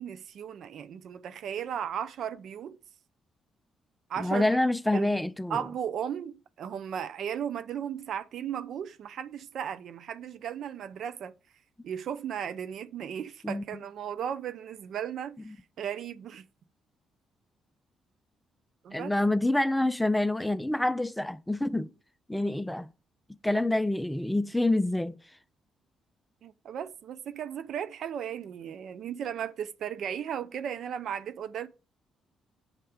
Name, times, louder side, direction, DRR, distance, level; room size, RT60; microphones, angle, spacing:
voice 1, 0.0-2.8 4.1-4.5 4.9-5.1 5.5-11.3 11.8-15.5 15.8-16.5 18.8-19.1 23.5-23.6 26.4-31.7, right 9 dB, 55° right, 0.4 m, -36 dB
voice 2, 4.2-5.6 13.4-13.6 18.9-21.9 22.3-22.9 23.4-25.2, left 1 dB, 5° left, 0.4 m, -27 dB
7.2 x 3.3 x 5.0 m
figure-of-eight pair, 40°, 0 cm